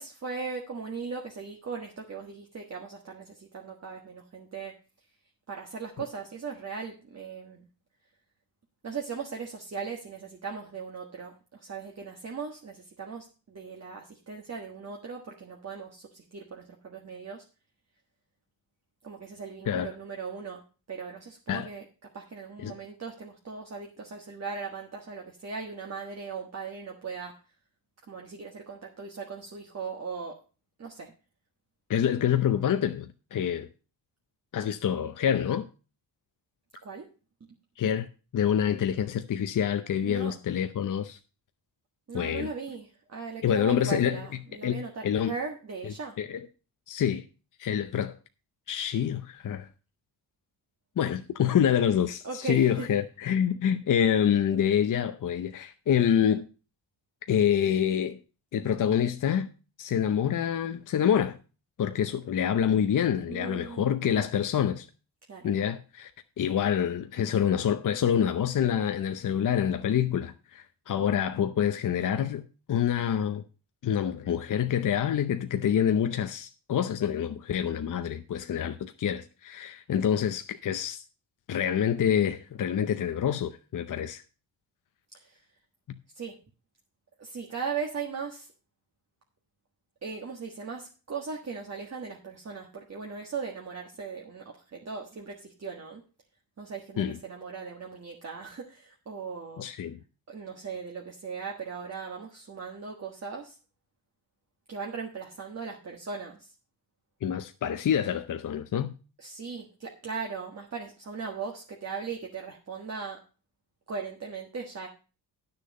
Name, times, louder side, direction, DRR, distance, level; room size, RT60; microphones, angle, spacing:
voice 1, 0.0-4.7 5.5-7.7 8.8-17.4 19.0-20.6 20.9-21.8 22.1-27.3 28.1-30.4 30.8-31.1 36.8-37.0 40.0-40.4 42.1-46.2 52.2-53.0 63.3-63.9 65.3-65.5 85.1-85.4 86.1-86.4 87.2-88.5 90.0-96.0 96.6-99.7 100.3-103.6 104.7-106.5 109.2-113.2 113.9-114.9, right 5 dB, 40° right, 1.6 m, -38 dB
voice 2, 31.9-33.7 34.5-35.7 37.8-38.1 38.3-41.2 42.1-42.5 43.4-44.2 44.6-45.3 45.8-46.4 46.9-47.2 47.6-48.2 48.7-49.7 51.0-56.5 57.3-58.2 58.5-59.5 59.8-61.4 61.8-64.9 65.4-66.1 66.4-73.4 73.8-81.0 81.5-84.2 97.0-97.2 99.6-100.0 107.2-108.9, left 9 dB, 50° left, 0.7 m, -27 dB
9.9 x 6.7 x 5.3 m
cardioid pair, 105°, 41 cm